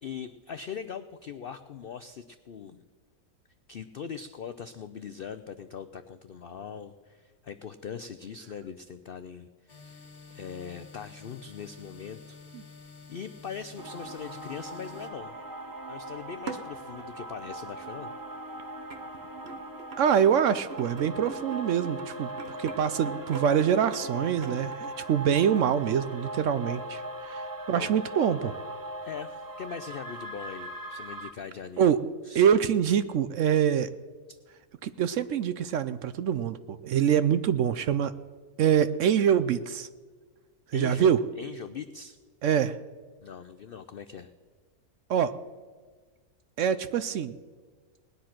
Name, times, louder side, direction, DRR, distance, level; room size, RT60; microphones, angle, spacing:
voice 1, 0.0-2.8 3.7-12.7 13.1-15.4 15.9-18.1 27.7-28.3 29.0-31.9 32.2-32.5 34.3-34.4 40.7-42.2 43.2-44.3, left 7 dB, 75° left, 11 dB, 0.5 m, -41 dB
sound 1, 9.7-15.1, left 4 dB, 35° left, 2.7 m, -49 dB
sound 2, 13.8-31.3, right 1 dB, 20° right, 0.6 m, -40 dB
sound 3, 16.3-17.4 18.2-18.3 18.9-26.5 26.8-26.9, right 5 dB, 45° right, 1.2 m, -43 dB
voice 2, 20.0-28.5 31.8-32.0 32.3-33.9 34.8-38.1 38.6-39.9 40.7-41.2 42.4-42.8 45.1-45.3 46.6-47.3, right 8 dB, 65° right, 13 dB, 0.8 m, -25 dB
19.0 x 10.0 x 5.9 m, 1.5 s
omnidirectional pair, 1.6 m